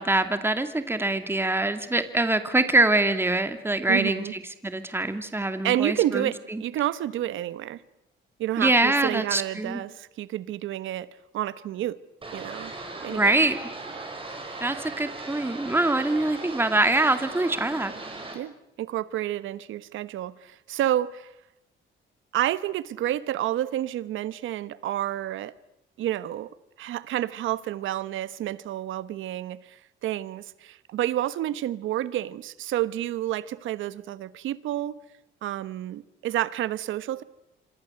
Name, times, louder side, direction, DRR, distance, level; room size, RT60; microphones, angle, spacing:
voice 1, 0.0-6.6 8.6-9.8 13.1-13.7 14.6-17.9, right 2 dB, 10° right, 2.3 m, -24 dB
voice 2, 3.9-4.3 5.6-7.8 8.4-11.1 11.3-12.0 12.3-12.7 13.0-13.3 18.3-21.3 22.3-25.5 26.0-26.5 26.8-35.0 35.4-37.2, right 13 dB, 85° right, 1.2 m, -29 dB
sound 1, 12.2-18.4, right 2 dB, 25° right, 7.0 m, -38 dB
26.5 x 25.5 x 7.9 m
cardioid pair, 90°, 20 cm